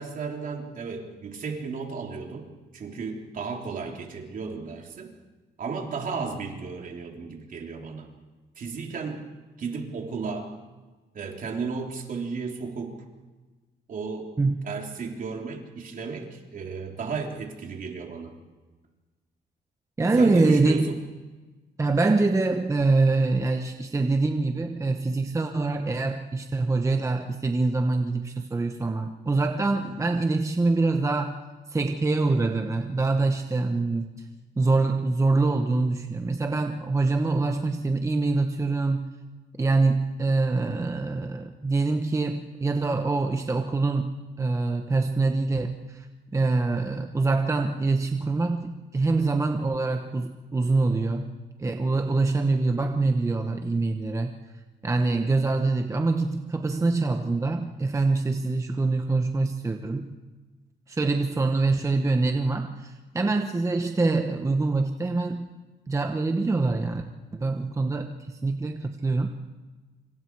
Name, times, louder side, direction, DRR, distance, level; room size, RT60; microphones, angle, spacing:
voice 1, 0.0-2.5 2.7-5.1 5.6-8.1 8.6-9.3 9.6-10.5 11.1-13.0 13.9-14.3 14.6-18.3 20.1-20.8, right 5 dB, 50° right, 1 dB, 3.4 m, -34 dB
voice 2, 20.0-21.0 21.8-31.4 31.7-34.3 34.6-39.1 39.6-44.1 44.4-46.1 46.3-51.3 51.6-54.4 54.8-60.1 60.9-65.5 65.9-67.0 67.3-69.3, right 3 dB, 15° right, 5 dB, 1.0 m, -25 dB
26.5 x 26.0 x 4.7 m, 1.3 s
cardioid pair, 140°, 18 cm